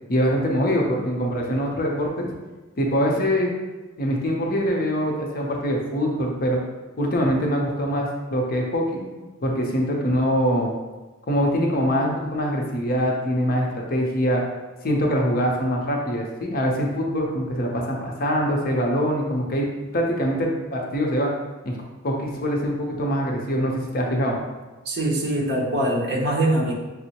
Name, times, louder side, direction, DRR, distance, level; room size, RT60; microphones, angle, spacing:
voice 1, 0.1-2.3 2.8-3.5 4.0-6.6 7.0-9.0 9.4-10.7 11.3-14.4 14.8-21.3 21.6-21.8 22.0-24.4, equal, 45° left, 0 dB, 0.6 m, -23 dB
voice 2, 24.8-26.7, right 1 dB, 50° right, -2 dB, 0.8 m, -23 dB
6.0 x 2.0 x 2.8 m, 1.2 s
head